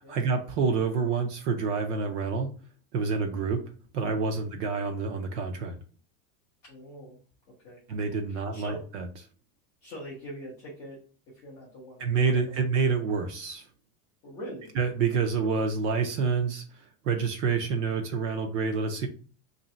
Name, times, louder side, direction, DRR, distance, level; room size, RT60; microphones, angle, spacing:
voice 1, 0.1-2.5 2.9-5.8 7.9-9.1 12.0-13.7 14.8-19.1, right 5 dB, 55° right, 4 dB, 0.6 m, -28 dB
voice 2, 4.3-4.6 6.6-7.2 7.5-7.8 8.3-8.8 9.8-11.0 11.3-12.6 14.2-14.7, equal, 20° left, -6 dB, 0.3 m, -43 dB
3.0 x 2.7 x 4.1 m, 0.39 s
supercardioid pair, 175°, 44 cm